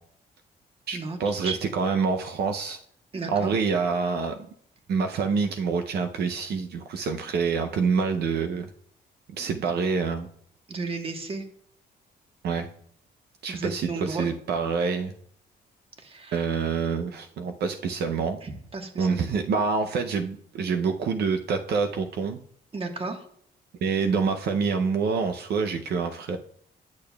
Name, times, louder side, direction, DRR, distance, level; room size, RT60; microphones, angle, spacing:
voice 1, 0.9-2.8 3.3-4.4 4.9-8.7 9.3-10.3 12.4-12.7 13.4-15.1 16.3-18.4 19.0-22.4 23.8-26.4, right 5 dB, 70° right, 6 dB, 0.6 m, -26 dB
voice 2, 3.1-3.5 9.5-9.6 10.7-11.4 13.5-14.3 16.0-16.5 18.4-19.2 22.7-23.2, right 3 dB, 35° right, 5 dB, 1.3 m, -34 dB
10.5 x 6.6 x 2.3 m, 0.64 s
cardioid pair, 105°, 17 cm